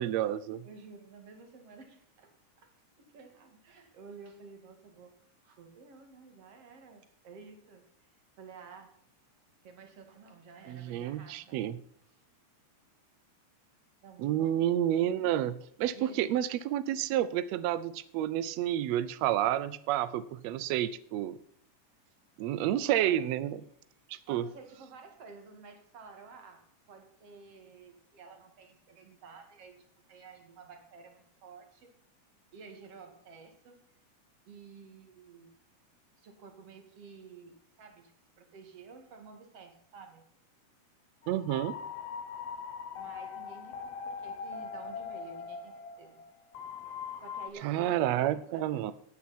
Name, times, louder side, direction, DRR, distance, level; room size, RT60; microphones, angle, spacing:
voice 1, 0.0-0.6 10.7-11.8 14.2-21.4 22.4-23.6 24.1-24.4 41.3-41.7 47.6-48.9, right 12 dB, 80° right, 14 dB, 1.5 m, -30 dB
voice 2, 0.6-9.0 9.6-11.7 12.0-12.2 14.0-14.6 15.9-16.4 22.6-23.2 24.3-31.9 32.5-33.9 34.5-35.5 36.2-38.1 38.4-40.3 42.9-46.2 46.8-46.9 47.2-48.9, right 4 dB, 50° right, 5 dB, 3.0 m, -52 dB
sound 1, 41.2-47.5, left 6 dB, 60° left, 1.9 m, -41 dB
16.5 x 9.3 x 4.3 m, 0.66 s
omnidirectional pair, 3.7 m